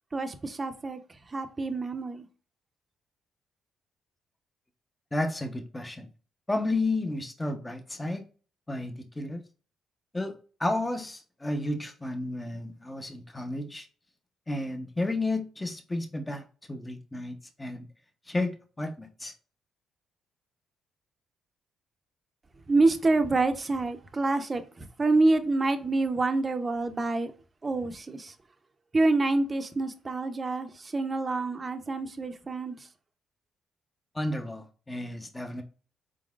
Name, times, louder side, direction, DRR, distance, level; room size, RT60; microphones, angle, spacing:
voice 1, 0.1-1.0 1.3-2.3 22.7-27.3 27.6-28.3 28.9-32.9, right 3 dB, 30° right, 0.7 m, -27 dB
voice 2, 5.1-6.1 6.5-8.2 8.7-9.4 10.1-10.3 10.6-13.9 14.5-17.9 18.3-19.3 34.1-35.6, left 2 dB, 15° left, 0.8 m, -32 dB
4.2 x 3.8 x 2.4 m
cardioid pair, 90°, 0 cm